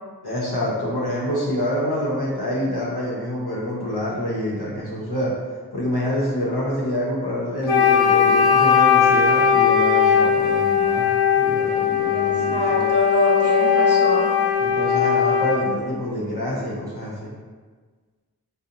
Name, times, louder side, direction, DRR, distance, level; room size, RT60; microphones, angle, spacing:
voice 1, 0.2-5.3 5.7-12.9 14.6-17.3, equal, 90° left, -5 dB, 0.7 m, -27 dB
Wind instrument woodwind instrument, 7.6-15.7, left 7 dB, 55° left, 0.8 m, -18 dB
voice 2, 12.1-14.3, right 2 dB, 40° right, -6 dB, 0.8 m, -24 dB
2.7 x 2.0 x 2.5 m, 1.5 s
wide cardioid pair, 45°, 37 cm